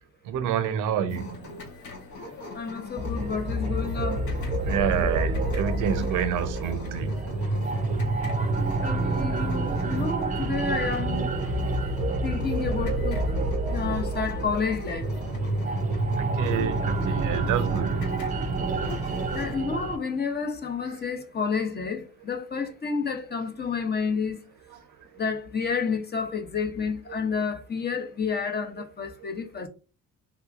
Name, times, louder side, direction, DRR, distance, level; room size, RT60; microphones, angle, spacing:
voice 1, 0.3-1.5 4.6-7.4 16.2-18.0, right 8 dB, 90° right, 0.6 m, -28 dB
sound 1, 1.1-19.5, left 2 dB, 70° left, 1.2 m, -42 dB
voice 2, 2.5-4.2 8.8-11.3 12.2-13.2 13.7-15.1 19.3-24.4 25.2-29.7, left 5 dB, 35° left, 0.7 m, -30 dB
sound 2, 3.0-20.0, right 2 dB, 25° right, 0.5 m, -28 dB
3.4 x 2.8 x 2.4 m
cardioid pair, 90°, 30 cm